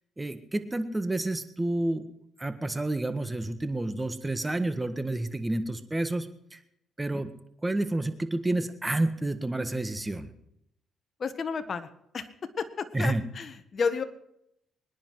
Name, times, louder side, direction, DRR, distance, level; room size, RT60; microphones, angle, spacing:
voice 1, 0.2-2.1 2.4-6.6 7.0-7.3 7.6-10.3 12.9-13.2, right 2 dB, 15° right, 10 dB, 1.5 m, -29 dB
voice 2, 11.2-11.9 12.1-12.3 12.6-14.0, left 5 dB, 45° left, 10 dB, 1.4 m, -31 dB
24.0 x 10.0 x 4.8 m, 0.76 s
cardioid pair, 90°, 0 cm